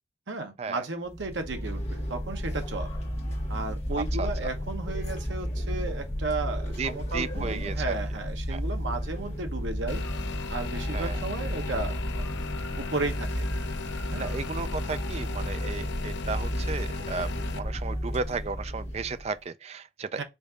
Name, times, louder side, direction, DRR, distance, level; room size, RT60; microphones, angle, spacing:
voice 1, 0.3-2.9 3.5-10.0 10.5-12.2 12.8-13.5 14.1-14.3 20.2-20.3, right 3 dB, 80° right, 1.0 m, -34 dB
sound 1, 1.1-19.3, equal, 35° left, 1.4 m, -33 dB
voice 2, 6.8-7.9 8.5-8.6 10.9-11.2 14.2-20.2, right 4 dB, 35° right, 0.4 m, -34 dB
sound 2, 9.8-15.7, equal, 5° left, 0.8 m, -51 dB
sound 3, 9.9-17.6, left 5 dB, 65° left, 0.5 m, -37 dB
5.1 x 2.6 x 3.7 m
head